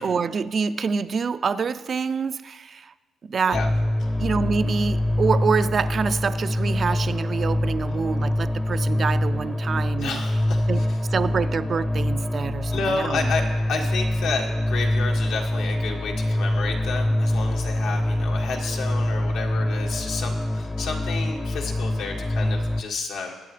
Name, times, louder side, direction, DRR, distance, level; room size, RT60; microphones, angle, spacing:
voice 1, 0.0-2.9 3.2-3.6 4.2-10.2 10.7-13.3, right 5 dB, 45° right, 0.4 m, -26 dB
sound 1, 3.5-22.8, left 1 dB, 10° left, 0.6 m, -25 dB
voice 2, 10.0-10.8 12.7-13.4 13.7-23.3, left 4 dB, 85° left, 1.6 m, -31 dB
20.5 x 8.5 x 3.3 m
cardioid pair, 90°, 0 cm